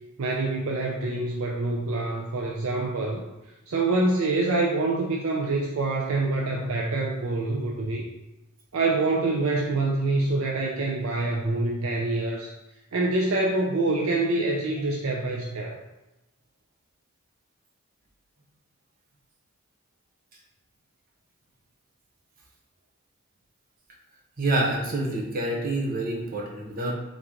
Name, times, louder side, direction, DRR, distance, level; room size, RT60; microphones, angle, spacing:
voice 1, 0.2-3.2 3.7-8.0 8.7-12.5 12.9-15.8, right 2 dB, 65° right, -1 dB, 0.5 m, -26 dB
voice 2, 24.4-26.9, right 2 dB, 40° right, -3 dB, 0.9 m, -27 dB
3.9 x 2.9 x 3.6 m, 0.98 s
head